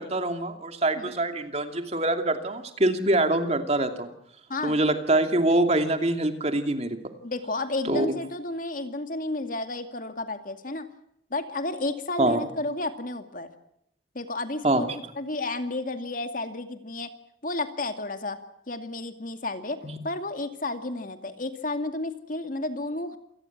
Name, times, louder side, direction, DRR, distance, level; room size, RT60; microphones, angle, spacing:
voice 1, 0.0-4.1 4.6-7.0 7.9-8.1 12.2-12.4 14.6-15.0 19.8-20.0, right 2 dB, 35° right, 7 dB, 2.6 m, -24 dB
voice 2, 7.2-10.9 11.3-13.5 14.1-14.9 15.2-17.1 17.4-18.4 18.7-19.8 20.0-23.2, left 2 dB, 45° left, 8 dB, 2.3 m, -32 dB
27.5 x 18.5 x 7.4 m, 0.76 s
head